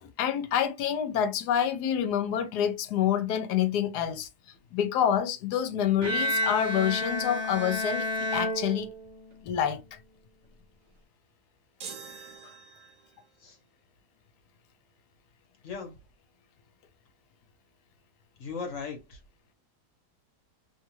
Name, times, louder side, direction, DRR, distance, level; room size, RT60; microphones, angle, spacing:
voice 1, 0.0-4.3 4.7-8.9 9.4-9.8, left 9 dB, 75° left, 1.1 m, -27 dB
Bowed string instrument, 6.0-9.4, left 1 dB, 55° right, 0.9 m, -30 dB
sound 1, 11.8-13.3, right 6 dB, 85° right, 1.4 m, -44 dB
voice 2, 15.6-16.0 18.4-19.2, left 5 dB, 55° left, 1.2 m, -37 dB
3.2 x 2.4 x 3.0 m
omnidirectional pair, 1.8 m